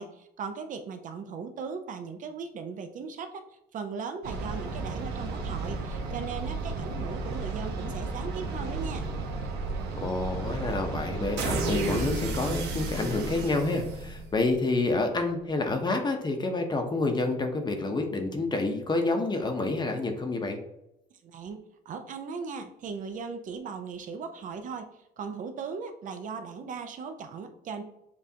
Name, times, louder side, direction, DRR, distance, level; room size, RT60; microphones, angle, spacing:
voice 1, 0.0-3.4 3.7-9.1 21.2-24.9 25.2-27.8, right 5 dB, 50° right, 7 dB, 0.5 m, -38 dB
sound 1, 4.2-14.5, right 3 dB, 80° right, 0.9 m, -33 dB
voice 2, 9.9-20.6, left 2 dB, 25° left, 5 dB, 0.7 m, -28 dB
6.9 x 2.5 x 2.7 m, 0.83 s
cardioid pair, 110°, 17 cm